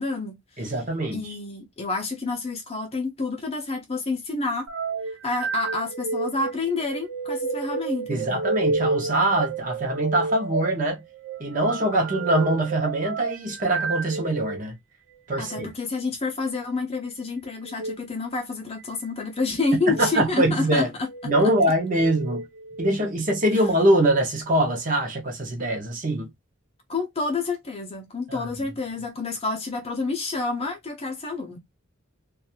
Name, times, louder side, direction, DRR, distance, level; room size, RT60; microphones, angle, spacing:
voice 1, 0.0-0.7 1.1-4.7 5.2-8.4 15.4-21.5 26.9-31.6, left 3 dB, 30° left, 0.6 m, -29 dB
voice 2, 0.6-1.3 8.1-11.0 11.4-14.7 15.3-15.7 19.9-20.9 21.2-22.5 22.8-26.3 28.3-28.5, right 1 dB, 40° right, 0.8 m, -23 dB
sound 1, 4.7-14.6 15.4-15.7 17.6-18.0 18.8-19.3 19.8-20.1 20.9-21.4 21.9-23.0, right 3 dB, 75° right, 0.5 m, -30 dB
2.5 x 2.4 x 2.7 m
head